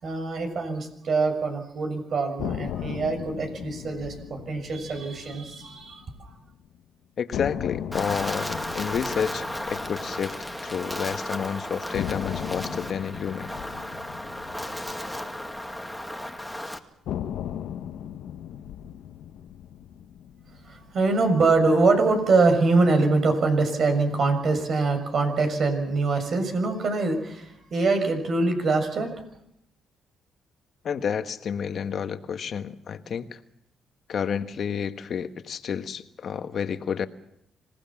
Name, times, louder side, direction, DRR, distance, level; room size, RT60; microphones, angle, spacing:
voice 1, 0.0-6.3 20.6-29.1, right 3 dB, 55° right, 7 dB, 6.6 m, -24 dB
sound 1, 2.4-6.5 6.7-6.8 7.3-11.4 11.9-16.3 17.0-21.4, left 10 dB, 80° left, 1.1 m, -37 dB
voice 2, 7.2-13.5 30.8-33.4 34.1-37.1, left 7 dB, 55° left, 9 dB, 1.5 m, -30 dB
Wind, 7.9-16.8, left 1 dB, ahead, 2.2 m, -34 dB
26.5 x 18.5 x 7.4 m, 0.75 s
cardioid pair, 90°, 0 cm